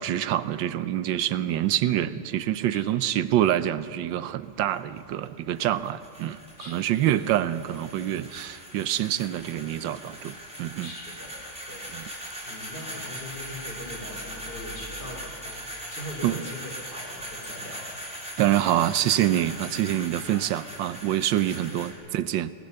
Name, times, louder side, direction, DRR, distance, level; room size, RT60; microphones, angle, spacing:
voice 1, 0.0-6.4 6.7-10.9 11.9-12.0 16.2-16.4 18.4-22.5, right 12 dB, 70° right, 14 dB, 1.3 m, -26 dB
voice 2, 2.7-3.0 6.6-7.1 10.8-11.3 11.7-17.9 20.3-20.6 21.4-21.9, left 1 dB, 45° left, 0 dB, 4.1 m, -41 dB
Round Bells, 4.4-21.9, equal, 5° right, 4.0 m, -40 dB
24.0 x 19.0 x 6.8 m, 2.4 s
omnidirectional pair, 2.4 m